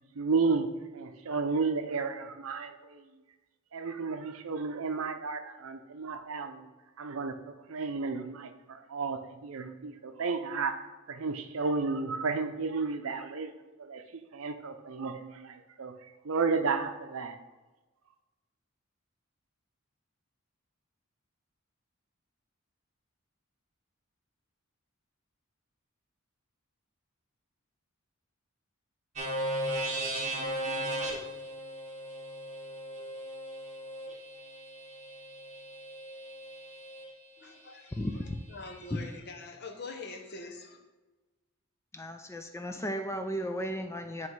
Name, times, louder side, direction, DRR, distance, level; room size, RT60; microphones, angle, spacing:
voice 1, 0.2-0.7 0.9-3.0 3.7-6.6 7.0-7.4 7.7-10.8 11.1-13.5 13.8-14.0 14.3-15.9 16.2-17.4, right 4 dB, 70° right, 7 dB, 0.6 m, -32 dB
sound 1, 29.2-37.0, right 1 dB, 35° right, 1.1 m, -37 dB
voice 2, 37.4-38.1 38.5-40.8, left 3 dB, 50° left, 3 dB, 0.9 m, -44 dB
voice 3, 41.9-44.3, equal, 15° left, 6 dB, 0.4 m, -35 dB
9.1 x 3.1 x 4.6 m, 1.2 s
head